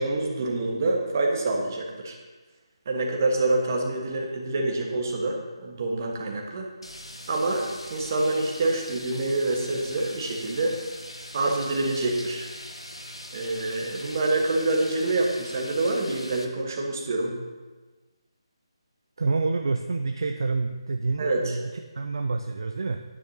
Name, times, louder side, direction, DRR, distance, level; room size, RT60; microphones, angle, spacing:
voice 1, 0.0-2.1 2.8-6.7 7.3-10.8 11.3-12.5 13.3-17.4 21.2-21.6, right 2 dB, 35° right, 1 dB, 1.5 m, -26 dB
sound 1, 6.8-16.4, left 1 dB, 85° left, 1.2 m, -41 dB
voice 2, 19.2-23.0, right 3 dB, 55° right, 6 dB, 0.5 m, -28 dB
11.5 x 9.9 x 2.9 m, 1.3 s
figure-of-eight pair, 150°, 3 cm